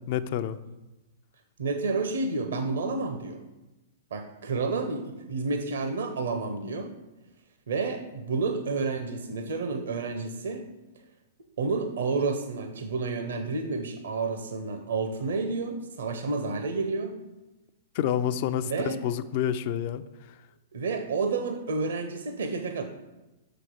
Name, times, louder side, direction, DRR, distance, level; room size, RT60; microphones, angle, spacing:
voice 1, 0.1-0.6 18.0-20.0, left 10 dB, 50° left, 13 dB, 0.5 m, -28 dB
voice 2, 1.6-3.4 4.1-6.9 7.7-10.6 11.6-17.1 18.6-19.0 20.7-22.8, right 4 dB, 70° right, 7 dB, 0.7 m, -30 dB
6.3 x 5.1 x 6.1 m, 1.0 s
figure-of-eight pair, 110°, 0 cm